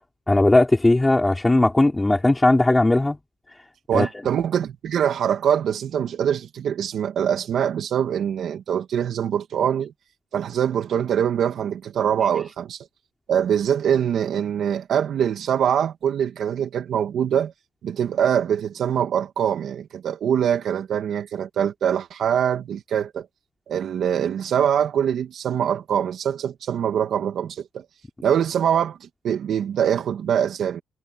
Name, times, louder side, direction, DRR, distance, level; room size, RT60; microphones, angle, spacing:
voice 1, 0.3-3.2 3.9-4.1, left 2 dB, 10° left, 5.2 m, -18 dB
voice 2, 3.9-9.9 10.3-12.9 13.3-17.5 17.8-23.3 23.7-27.8 28.2-30.8, right 9 dB, 60° right, 2.5 m, -23 dB
cardioid pair, 150°, 0 cm